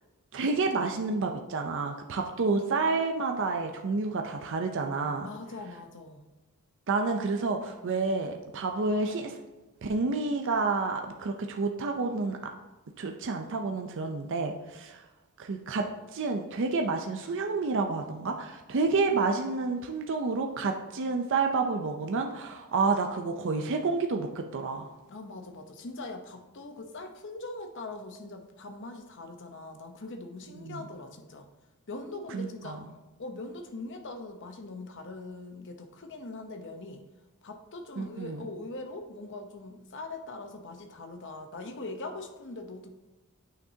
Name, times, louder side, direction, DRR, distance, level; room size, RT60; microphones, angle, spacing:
voice 1, 0.3-5.3 6.9-9.4 9.8-12.4 13.0-15.0 15.4-15.8 16.1-24.9 30.6-30.8 32.3-32.8 38.0-38.4, right 4 dB, 55° right, 4 dB, 0.5 m, -29 dB
voice 2, 5.2-6.3 25.1-31.5 31.9-32.8 33.2-37.0 37.4-42.9, left 2 dB, 55° left, 5 dB, 0.8 m, -41 dB
9.1 x 5.9 x 2.7 m, 1.1 s
head